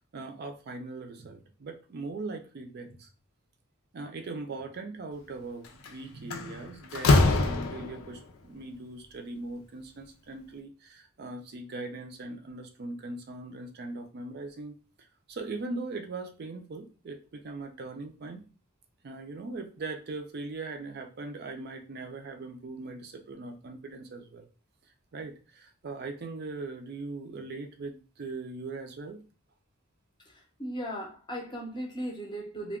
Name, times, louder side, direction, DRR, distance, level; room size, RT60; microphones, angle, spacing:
voice 1, 0.1-3.1 3.9-14.7 15.3-18.5 19.0-24.5 25.1-29.2, right 3 dB, 50° right, 0.4 m, -40 dB
Slam, 5.6-5.9 6.3-8.2, left 2 dB, 85° left, 0.5 m, -24 dB
voice 2, 30.6-32.8, equal, 20° left, 0.7 m, -36 dB
2.2 x 2.2 x 3.5 m
head